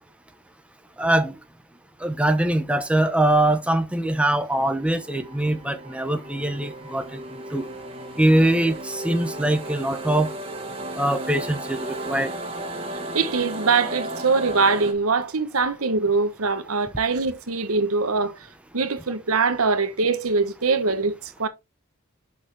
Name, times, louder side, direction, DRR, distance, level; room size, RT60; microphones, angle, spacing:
voice 1, 1.0-1.3 2.0-7.6 8.2-10.3 11.0-12.3, right 1 dB, 5° right, 0.9 m, -22 dB
sound 1, 4.3-14.9, right 1 dB, 25° right, 1.4 m, -35 dB
voice 2, 13.1-18.4 18.7-21.1 21.4-21.5, right 4 dB, 80° right, 1.1 m, -22 dB
6.4 x 6.0 x 3.4 m
head